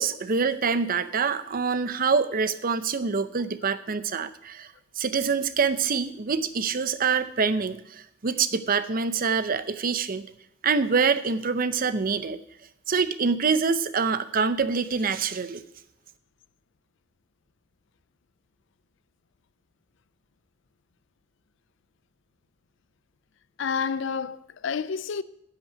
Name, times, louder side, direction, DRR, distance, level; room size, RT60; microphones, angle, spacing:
voice 1, 0.0-10.3 10.6-12.4 12.9-15.6, right 5 dB, 45° right, 0.6 m, -25 dB
voice 2, 23.6-25.2, left 6 dB, 65° left, 0.5 m, -29 dB
10.0 x 5.8 x 8.0 m
head